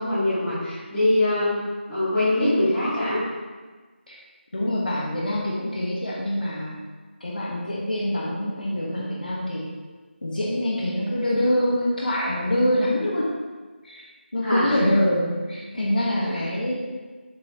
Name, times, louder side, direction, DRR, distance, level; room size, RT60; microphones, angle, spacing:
voice 1, 0.0-1.6 1.9-3.2 14.4-14.8, left 1 dB, 5° left, -17 dB, 1.7 m, -23 dB
voice 2, 4.5-6.8 7.2-9.7 10.2-13.3 13.8-14.0 14.3-16.7, left 1 dB, 50° left, -4 dB, 1.4 m, -25 dB
7.3 x 5.8 x 3.0 m, 1.4 s
figure-of-eight pair, 170°, 6 cm